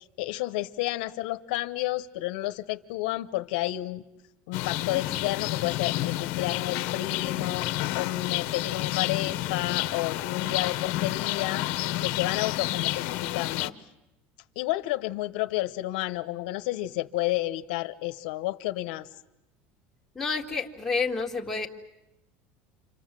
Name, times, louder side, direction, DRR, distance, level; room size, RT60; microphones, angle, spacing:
voice 1, 0.2-4.0 4.5-13.7 14.6-19.1, left 17 dB, 80° left, 10 dB, 0.9 m, -31 dB
sound 1, 4.5-13.7, left 16 dB, 60° left, 1.0 m, -30 dB
voice 2, 20.2-21.7, left 4 dB, 5° left, -1 dB, 1.9 m, -29 dB
29.0 x 25.5 x 7.6 m, 0.94 s
cardioid pair, 160°, 5 cm